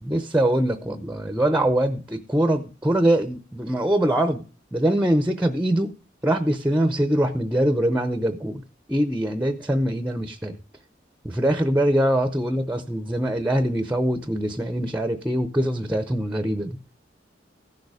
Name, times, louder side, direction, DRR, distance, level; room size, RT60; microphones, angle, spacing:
voice 1, 0.0-4.4 4.7-5.9 6.2-8.6 8.9-10.6 11.2-16.8, right 1 dB, 10° right, 0.6 m, -23 dB
15.0 x 6.6 x 4.8 m
head